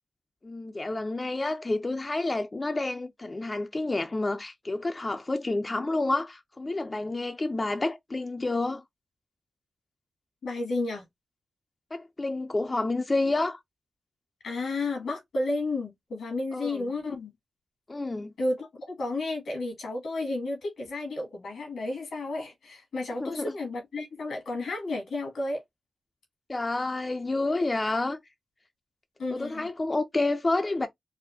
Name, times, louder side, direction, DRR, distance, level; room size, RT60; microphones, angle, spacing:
voice 1, 0.4-8.8 11.9-13.6 16.5-16.9 17.9-18.3 23.2-23.5 26.5-28.2 29.3-30.9, left 2 dB, 35° left, 0.6 m, -29 dB
voice 2, 10.4-11.0 14.4-17.3 18.4-25.6 29.2-29.7, left 2 dB, 85° left, 1.8 m, -32 dB
4.2 x 2.2 x 2.7 m
cardioid pair, 50°, 0 cm